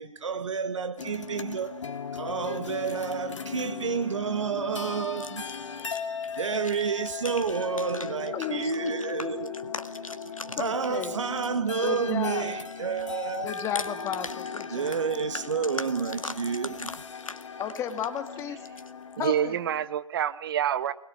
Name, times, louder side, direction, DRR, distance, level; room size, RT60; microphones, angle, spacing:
voice 1, 0.0-1.8 2.1-5.5 6.3-9.7 10.6-13.5 14.7-17.0, right 6 dB, 65° right, 1.8 m, -30 dB
sound 1, 1.0-1.6 2.7-3.1 3.3-3.6 4.0-4.2 5.0-12.0 12.3-19.4, left 3 dB, 85° left, 1.7 m, -41 dB
sound 2, 1.0-19.9, left 6 dB, 65° left, 2.3 m, -38 dB
voice 2, 8.3-8.9 10.6-11.1 11.8-12.4 13.4-14.9 17.6-18.6 19.2-19.6, left 8 dB, 15° left, 1.9 m, -33 dB
voice 3, 19.2-20.9, right 10 dB, 45° right, 1.1 m, -27 dB
22.0 x 20.5 x 8.9 m
figure-of-eight pair, 135°, 17 cm